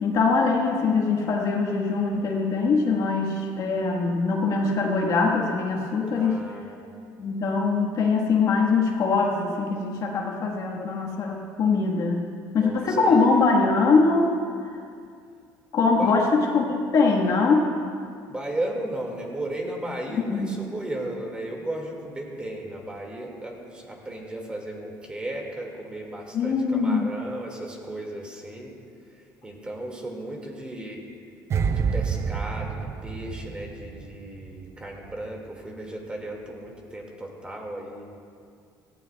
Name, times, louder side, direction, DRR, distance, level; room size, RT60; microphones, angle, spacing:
voice 1, 0.0-6.4 7.2-12.3 12.5-14.3 15.7-17.7 20.3-20.5 26.3-27.1, left 4 dB, 50° left, 0 dB, 1.4 m, -22 dB
voice 2, 6.1-6.7 12.5-13.2 16.0-16.1 18.2-28.8 29.1-31.0 31.7-38.0, right 1 dB, 15° right, 0 dB, 2.0 m, -35 dB
sound 1, 31.5-34.7 35.0-35.2, right 6 dB, 40° right, 0.5 m, -28 dB
17.5 x 15.5 x 2.3 m, 2.3 s
cardioid pair, 135°, 7 cm